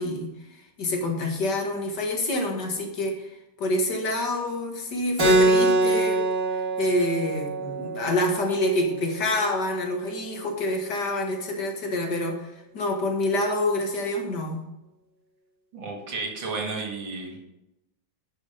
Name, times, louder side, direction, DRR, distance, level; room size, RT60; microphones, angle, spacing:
voice 1, 0.0-6.2 6.5-14.6, left 1 dB, 65° left, 2 dB, 2.3 m, -27 dB
Keyboard (musical), 5.2-10.3, right 2 dB, 45° right, 2.9 m, -25 dB
voice 2, 15.7-17.4, right 3 dB, 75° right, 1 dB, 2.8 m, -32 dB
11.5 x 6.2 x 5.1 m, 0.93 s
omnidirectional pair, 2.1 m